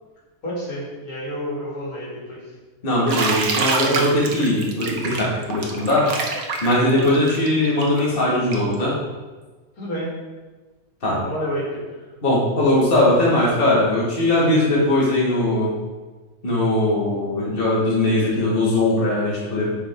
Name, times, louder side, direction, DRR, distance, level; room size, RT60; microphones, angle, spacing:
voice 1, 0.4-2.6 9.8-10.1 11.1-12.0, equal, 85° left, -6 dB, 2.9 m, -30 dB
voice 2, 2.8-6.1 6.6-8.9 11.0-11.2 12.2-15.7 16.4-19.8, left 1 dB, 40° left, -6 dB, 2.0 m, -20 dB
Bathtub (filling or washing), 3.1-8.7, right 4 dB, 80° right, 1.4 m, -26 dB
9.2 x 5.3 x 3.6 m, 1.3 s
omnidirectional pair, 1.5 m